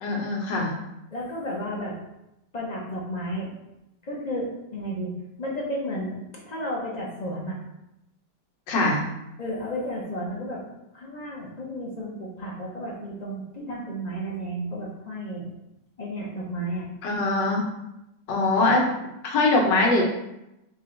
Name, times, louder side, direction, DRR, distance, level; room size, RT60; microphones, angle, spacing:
voice 1, 0.0-0.7 8.7-9.0 17.0-17.6 18.3-18.9 19.2-20.0, left 2 dB, 80° left, -1 dB, 1.6 m, -22 dB
voice 2, 1.1-2.0 2.5-3.5 4.0-5.1 5.4-7.6 9.4-10.6 10.9-15.5 16.0-16.9, equal, 45° left, -4 dB, 0.5 m, -32 dB
5.4 x 2.3 x 3.8 m, 0.89 s
omnidirectional pair, 1.9 m